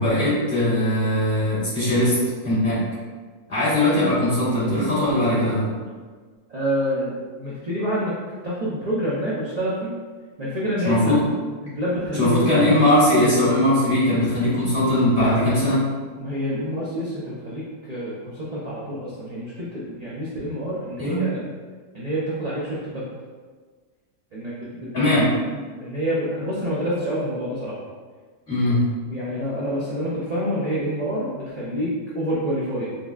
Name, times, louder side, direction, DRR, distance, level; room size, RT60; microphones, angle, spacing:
voice 1, 0.0-2.2 2.4-2.8 3.5-5.7 10.8-11.2 12.1-15.8 21.0-21.2 24.9-25.3 28.5-28.8, left 1 dB, 40° left, -11 dB, 1.8 m, -20 dB
voice 2, 6.5-8.1 8.4-9.9 10.4-11.2 11.6-12.7 16.2-21.4 21.9-23.0 24.3-25.1 25.8-27.7 29.1-32.9, equal, 45° right, -8 dB, 0.6 m, -27 dB
5.4 x 2.1 x 2.3 m, 1.5 s
omnidirectional pair, 1.4 m